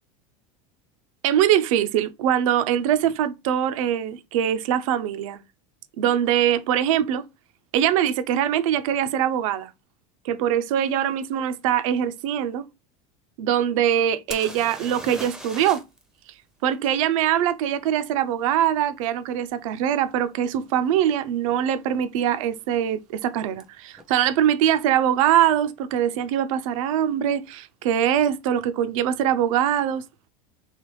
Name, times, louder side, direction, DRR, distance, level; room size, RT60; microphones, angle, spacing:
voice 1, 1.2-5.4 6.0-7.2 7.7-9.7 10.2-12.7 13.4-15.8 16.6-30.0, right 10 dB, 85° right, 0.4 m, -22 dB
sound 1, 14.3-16.0 16.3-16.4 19.8-19.9 20.5-20.7 21.0-21.6 23.6-23.7 24.0-24.1, equal, 5° right, 0.4 m, -38 dB
3.3 x 2.9 x 3.0 m
supercardioid pair, 130°, 17 cm